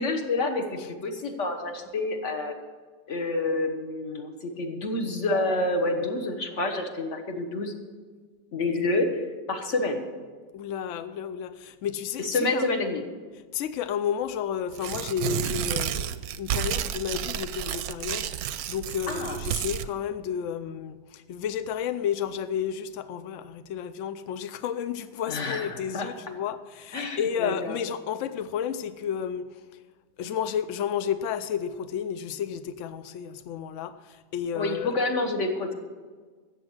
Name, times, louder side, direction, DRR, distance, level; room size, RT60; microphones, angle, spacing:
voice 1, 0.0-2.5 3.1-7.7 8.5-10.0 12.2-13.0 19.1-19.4 25.3-26.1 26.9-27.8 34.5-35.7, left 2 dB, 45° left, 5 dB, 1.6 m, -28 dB
voice 2, 10.5-12.7 13.5-29.6 30.2-34.9, left 8 dB, 75° left, 11 dB, 0.7 m, -32 dB
Tearing, 14.7-19.9, right 10 dB, 70° right, 1.0 m, -31 dB
13.5 x 8.3 x 6.4 m, 1.5 s
omnidirectional pair, 1.8 m